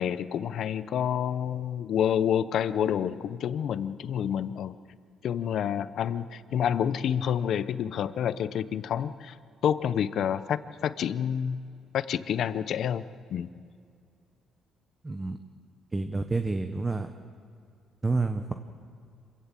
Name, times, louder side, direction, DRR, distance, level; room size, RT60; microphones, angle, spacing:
voice 1, 0.0-4.8 5.2-9.4 9.6-11.6 11.9-13.0 13.3-13.5, left 9 dB, 60° left, 14 dB, 0.7 m, -28 dB
voice 2, 15.0-15.4 15.9-17.1 18.0-18.5, right 3 dB, 15° right, 7 dB, 0.8 m, -29 dB
26.5 x 16.5 x 7.6 m, 2.4 s
cardioid pair, 140°, 0 cm